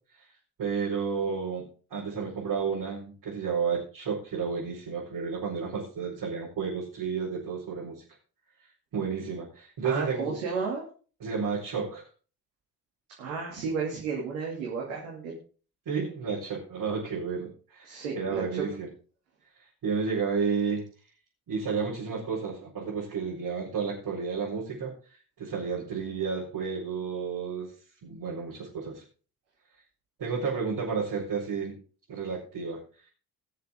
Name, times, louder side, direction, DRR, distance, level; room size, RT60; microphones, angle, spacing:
voice 1, 0.6-1.6 1.9-8.0 8.9-10.3 11.2-12.0 15.8-18.9 19.8-20.8 21.5-24.9 25.4-27.7 28.0-29.0 30.2-31.7 32.1-32.8, right 5 dB, 60° right, -6 dB, 5.0 m, -31 dB
voice 2, 9.8-10.8 13.2-15.4 17.8-18.6, right 5 dB, 85° right, -2 dB, 2.6 m, -33 dB
21.0 x 7.0 x 3.7 m, 0.39 s
hypercardioid pair, 40°, 41 cm